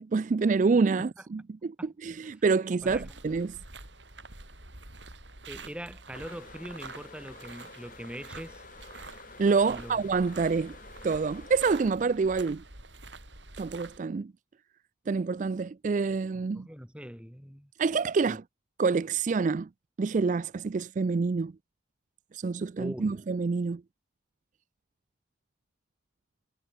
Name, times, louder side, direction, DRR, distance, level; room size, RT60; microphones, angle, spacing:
voice 1, 0.0-3.6 9.4-10.7 11.0-12.6 13.6-14.3 15.1-16.7 17.8-18.4 18.8-19.7 20.0-21.5 22.3-23.8, right 4 dB, 40° right, 0.3 m, -27 dB
sound 1, 2.8-14.0, right 3 dB, 75° right, 7.7 m, -47 dB
voice 2, 5.5-8.6 9.7-10.0 16.5-17.7 18.3-18.4 22.8-23.2, equal, 5° right, 5.2 m, -42 dB
sound 2, 6.1-11.9, left 4 dB, 45° left, 2.9 m, -50 dB
head